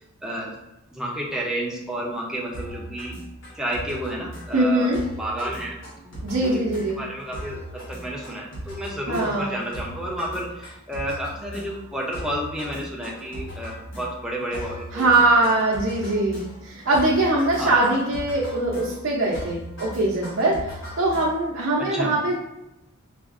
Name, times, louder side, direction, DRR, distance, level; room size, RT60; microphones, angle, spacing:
voice 1, 0.2-0.5 0.9-3.1 3.5-4.9 5.2-5.8 6.0-6.6 6.9-15.3 17.6-18.0 21.9-22.1, right 1 dB, 5° right, -4 dB, 0.6 m, -31 dB
sound 1, 2.5-21.6, equal, 65° left, 1.3 m, -38 dB
voice 2, 4.5-5.0 6.2-7.0 9.1-9.6 14.9-22.3, right 2 dB, 70° right, -5 dB, 0.7 m, -22 dB
4.7 x 2.4 x 2.5 m, 0.90 s
head